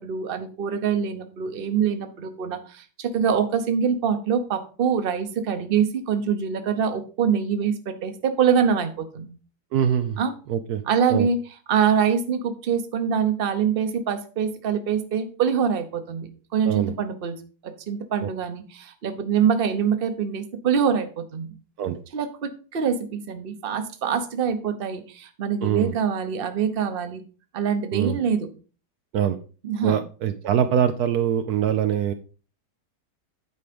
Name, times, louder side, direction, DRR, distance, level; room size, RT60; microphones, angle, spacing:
voice 1, 0.0-9.3 10.2-10.3 10.9-11.4 11.7-17.4 17.6-21.5 22.1-27.2 27.5-28.5 29.6-30.0, right 7 dB, 40° right, 9 dB, 1.0 m, -24 dB
voice 2, 9.7-10.2 10.5-10.8 11.1-11.3 16.7-17.0 18.2-18.3 21.8-22.0 25.6-25.9 27.9-28.2 29.1-29.4 29.8-32.1, right 9 dB, 70° right, 9 dB, 1.1 m, -23 dB
9.3 x 4.8 x 5.2 m, 0.37 s
omnidirectional pair, 1.8 m